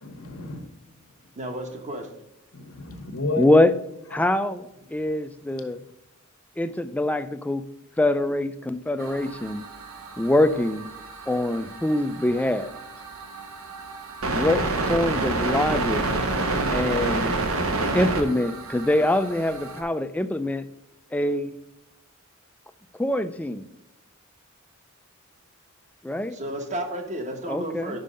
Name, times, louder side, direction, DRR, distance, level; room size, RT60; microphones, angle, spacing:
voice 1, 0.0-1.1 2.5-3.5 4.1-4.4 4.9-5.0 5.8-5.9, left 3 dB, 80° left, 1.0 m, -33 dB
voice 2, 1.4-2.1 26.3-28.0, right 1 dB, 35° right, 1.2 m, -32 dB
voice 3, 3.4-3.7 4.1-4.6 4.9-5.8 6.6-7.6 8.0-9.6 10.2-10.9 11.3-12.7 14.3-16.1 16.7-17.3 17.9-20.6 21.1-21.6 23.0-23.7 26.0-26.4 27.5-28.0, left 1 dB, 5° left, 0.4 m, -24 dB
sound 1, 9.0-19.8, right 2 dB, 75° right, 1.0 m, -29 dB
5.5 x 5.3 x 5.1 m
head